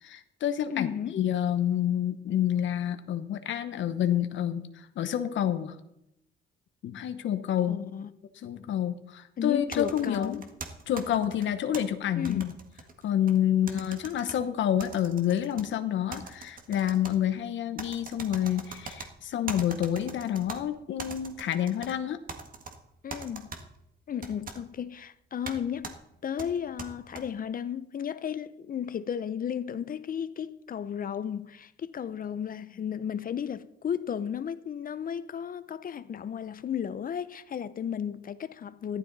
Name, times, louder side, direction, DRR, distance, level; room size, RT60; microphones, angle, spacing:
voice 1, 0.0-5.8 6.8-7.8 8.4-10.4 10.9-12.5 13.0-22.2, left 10 dB, 70° left, 1.0 m, -28 dB
voice 2, 0.7-1.2 7.7-8.1 9.4-10.4 12.2-12.5 23.0-23.5 24.1-26.0 26.2-39.0, left 8 dB, 45° left, 0.6 m, -34 dB
sound 1, 9.7-11.8 12.3-13.4 13.7-14.4 14.8-15.7 16.1-17.2 17.8-19.1 19.5-20.6 21.0-21.9 22.3-22.8 23.1-23.6 24.2-24.6 25.5-25.6 25.8-26.0 26.4-27.2, right 4 dB, 45° right, 1.8 m, -41 dB
14.5 x 12.0 x 4.0 m
cardioid pair, 90°, 20 cm